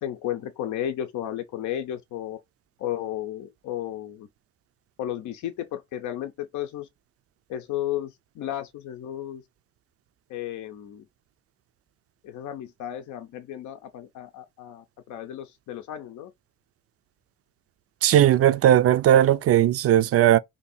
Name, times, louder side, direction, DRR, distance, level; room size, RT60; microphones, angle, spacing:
voice 1, 0.0-2.4 2.8-4.3 5.0-6.9 7.5-9.4 10.3-11.0 12.2-16.3, left 11 dB, 75° left, 0.6 m, -33 dB
voice 2, 18.0-20.4, right 11 dB, 50° right, 0.4 m, -18 dB
2.8 x 2.6 x 4.2 m
cardioid pair, 90°, 30 cm